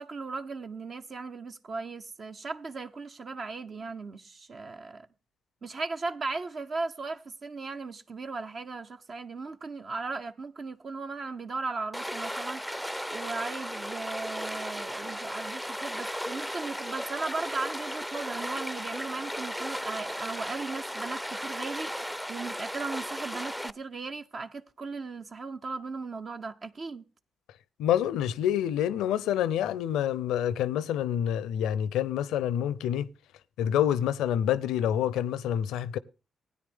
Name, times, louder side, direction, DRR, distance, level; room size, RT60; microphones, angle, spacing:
voice 1, 0.0-5.1 5.6-27.0, right 3 dB, 55° right, 0.8 m, -37 dB
Stream, 11.9-23.7, equal, ahead, 0.5 m, -36 dB
voice 2, 27.8-33.1 33.6-36.0, left 10 dB, 90° left, 0.5 m, -27 dB
16.5 x 9.6 x 3.6 m
supercardioid pair, 55°, 0 cm